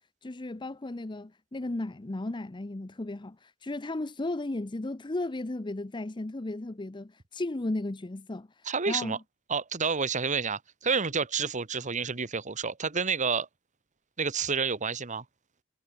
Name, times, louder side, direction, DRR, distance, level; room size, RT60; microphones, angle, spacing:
voice 1, 0.2-9.2, left 2 dB, 25° left, 0.6 m, -35 dB
voice 2, 8.6-9.2 9.5-13.5 14.2-15.2, right 5 dB, 35° right, 1.4 m, -29 dB
head